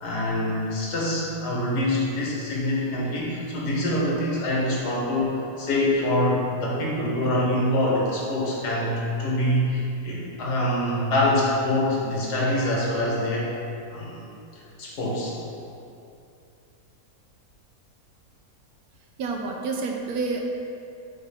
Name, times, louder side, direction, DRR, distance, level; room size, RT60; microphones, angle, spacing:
voice 1, 0.0-13.5 13.9-14.2 14.8-15.4, left 1 dB, 75° left, -4 dB, 1.8 m, -25 dB
voice 2, 19.2-20.4, right 4 dB, 70° right, 1 dB, 1.0 m, -28 dB
7.7 x 4.2 x 3.5 m, 2.6 s
omnidirectional pair, 1.8 m